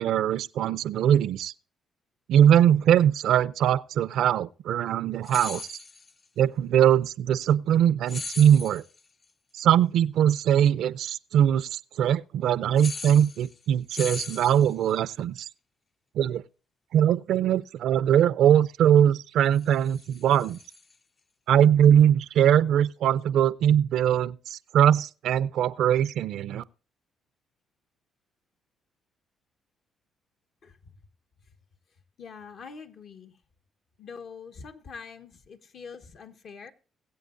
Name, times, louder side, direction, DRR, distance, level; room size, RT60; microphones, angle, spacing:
voice 1, 0.0-1.5 2.3-5.8 6.4-8.8 9.5-15.5 16.1-16.4 16.9-20.6 21.5-26.6, right 10 dB, 80° right, 0.5 m, -21 dB
sound 1, 5.2-6.1 8.1-9.0 12.8-13.6 13.9-14.9 19.5-20.9, left 4 dB, 35° left, 0.5 m, -39 dB
voice 2, 32.2-33.4 34.0-36.7, left 5 dB, 65° left, 1.3 m, -44 dB
21.5 x 7.9 x 2.6 m
cardioid pair, 90°, 0 cm